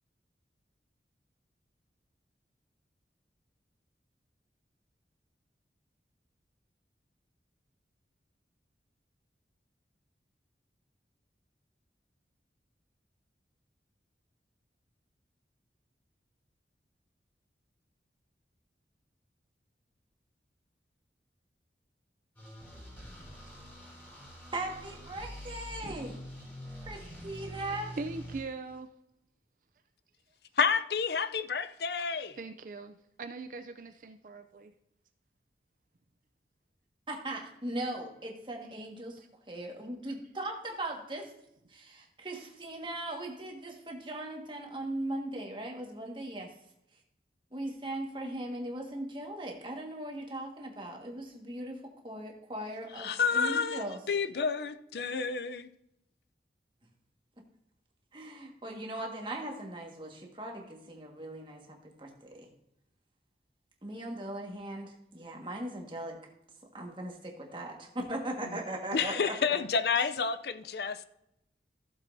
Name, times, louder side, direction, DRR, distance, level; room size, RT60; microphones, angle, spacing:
sound 1, 22.4-28.4, equal, 10° left, 3.2 m, -45 dB
voice 1, 24.5-26.1 26.9-28.0 37.1-39.2 39.5-41.3 41.7-46.5 47.5-54.0 58.1-62.5 63.8-66.2 66.7-69.4, right 1 dB, 30° right, 1.6 m, -39 dB
voice 2, 26.9-27.5 28.0-28.9 32.4-34.7 39.2-39.3, right 3 dB, 50° right, 0.5 m, -42 dB
voice 3, 30.6-32.4 52.9-55.7 68.4-68.6 68.9-71.1, left 5 dB, 65° left, 0.5 m, -30 dB
15.5 x 7.2 x 2.7 m
head